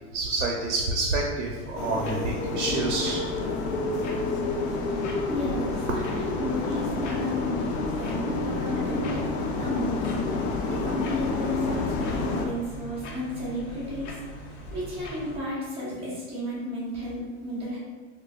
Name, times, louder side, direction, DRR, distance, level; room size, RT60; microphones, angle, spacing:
voice 1, 0.1-3.2, right 3 dB, 85° right, 0 dB, 0.6 m, -28 dB
sound 1, 1.5-15.4, equal, 70° left, 0.9 m, -41 dB
sound 2, 1.8-12.5, left 3 dB, 45° left, 0.5 m, -29 dB
voice 2, 4.9-7.6 7.9-9.3 9.6-14.1 14.7-17.8, left 1 dB, 15° right, -9 dB, 1.0 m, -33 dB
4.7 x 2.2 x 2.3 m, 1.4 s
supercardioid pair, 145°, 36 cm